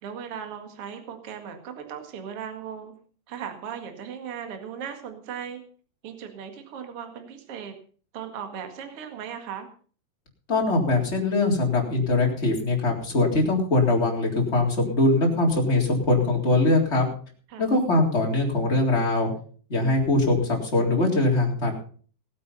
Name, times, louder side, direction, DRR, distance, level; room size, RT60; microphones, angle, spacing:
voice 1, 0.0-2.9 3.3-5.6 6.0-7.7 8.1-9.7 17.5-17.6, right 8 dB, 45° right, 6 dB, 2.3 m, -37 dB
voice 2, 10.5-17.1 17.6-19.3 19.7-21.7, left 2 dB, 15° left, -1 dB, 3.4 m, -22 dB
18.5 x 8.5 x 5.6 m, 0.44 s
omnidirectional pair, 4.8 m